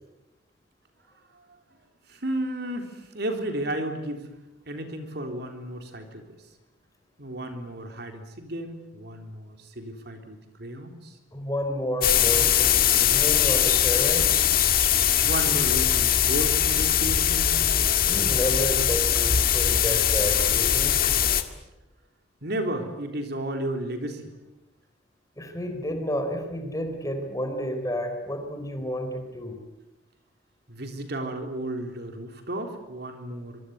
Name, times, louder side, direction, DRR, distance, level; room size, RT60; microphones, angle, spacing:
voice 1, 2.1-4.3 4.7-6.4 7.2-11.2 15.2-17.7 22.4-24.3 30.7-33.6, right 1 dB, 55° right, 5 dB, 3.7 m, -33 dB
voice 2, 11.3-14.4 18.0-21.1 25.4-29.6, equal, 15° left, 6 dB, 3.9 m, -31 dB
sound 1, 12.0-21.4, left 10 dB, 45° left, 1.9 m, -21 dB
25.0 x 24.0 x 9.4 m, 1.0 s
head